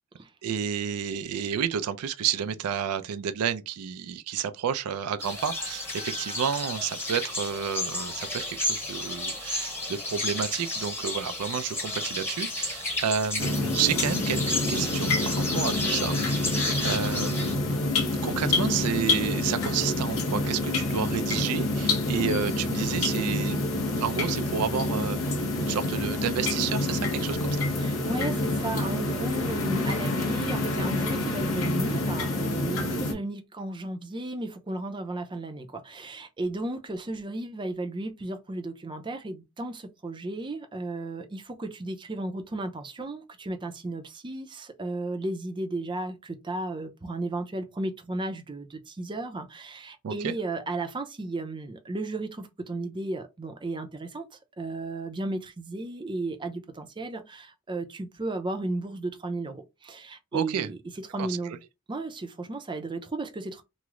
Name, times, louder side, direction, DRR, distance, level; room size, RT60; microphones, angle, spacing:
voice 1, 0.4-27.7 50.0-50.3 60.3-60.7 61.2-61.4, right 8 dB, 80° right, 0.4 m, -31 dB
sound 1, 5.2-17.5, left 2 dB, 10° left, 0.9 m, -32 dB
sound 2, 13.4-33.1, left 2 dB, 65° left, 1.0 m, -27 dB
voice 2, 27.8-54.3 54.6-60.8 61.1-61.6 61.9-63.6, right 2 dB, 20° right, 0.5 m, -34 dB
3.0 x 2.0 x 3.5 m
head